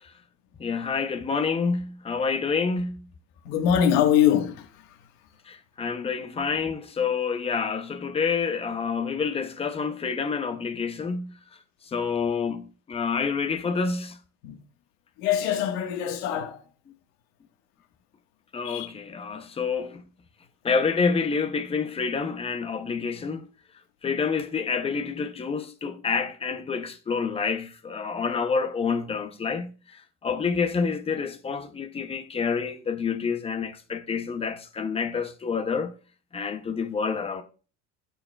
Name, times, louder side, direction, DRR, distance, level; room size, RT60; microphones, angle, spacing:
voice 1, 0.6-3.0 5.5-11.3 11.9-14.2 18.5-20.0 20.6-23.5 24.0-35.9 36.3-37.4, left 5 dB, 15° left, 0.5 m, -28 dB
voice 2, 3.4-4.5 14.4-14.5 15.2-16.6 18.6-18.9, left 9 dB, 85° left, 1.4 m, -23 dB
12.5 x 4.7 x 2.2 m
cardioid pair, 155°, 35 cm